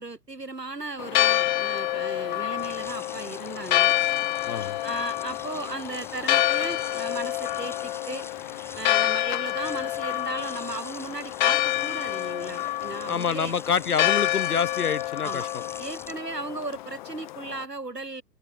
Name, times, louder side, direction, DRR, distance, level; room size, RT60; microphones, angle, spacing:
voice 1, 0.0-3.9 4.8-8.3 8.8-13.5 15.2-15.5 15.8-18.2, right 3 dB, 85° right, 2.5 m, -36 dB
Church bell, 1.0-17.6, left 15 dB, 30° left, 0.8 m, -27 dB
sound 1, 2.6-17.0, left 3 dB, 5° left, 5.1 m, -45 dB
voice 2, 4.5-4.8 13.1-15.6, left 7 dB, 65° left, 2.1 m, -27 dB
figure-of-eight pair, 115°, 48 cm